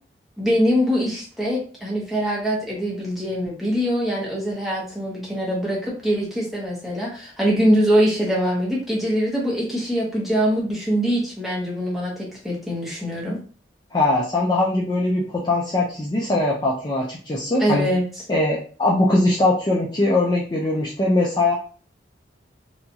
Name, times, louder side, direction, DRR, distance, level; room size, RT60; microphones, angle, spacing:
voice 1, 0.4-13.4 17.6-18.0, equal, ahead, -5 dB, 0.9 m, -23 dB
voice 2, 13.9-17.9 18.3-21.5, left 2 dB, 25° left, -3 dB, 0.3 m, -21 dB
2.8 x 2.3 x 2.6 m, 0.41 s
head